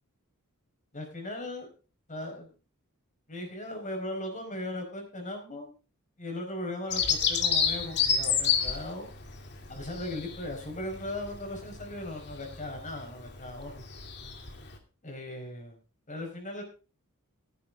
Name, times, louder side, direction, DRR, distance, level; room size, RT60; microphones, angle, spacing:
voice 1, 0.9-1.7 2.1-2.5 3.3-5.7 6.2-9.1 9.7-13.9 15.0-15.8 16.1-16.6, left 1 dB, 35° left, 3 dB, 4.7 m, -38 dB
Bird vocalization bird call bird song, 6.9-14.8, left 7 dB, 50° left, 2.7 m, -30 dB
14.5 x 11.0 x 3.6 m, 0.34 s
head